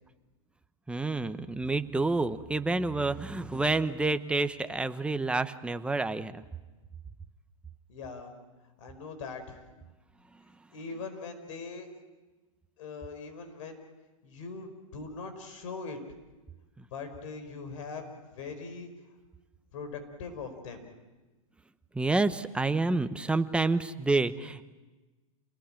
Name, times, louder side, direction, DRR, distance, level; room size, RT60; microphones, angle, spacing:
voice 1, 0.9-6.4 16.8-16.9 21.9-24.6, right 3 dB, 5° right, 10 dB, 1.0 m, -28 dB
voice 2, 7.9-8.3 8.8-9.6 10.7-11.9 12.8-13.8 14.2-16.0 16.9-18.9 19.7-20.8, left 4 dB, 65° left, 8 dB, 5.3 m, -41 dB
28.5 x 20.0 x 9.0 m, 1.2 s
hypercardioid pair, 125°, 18 cm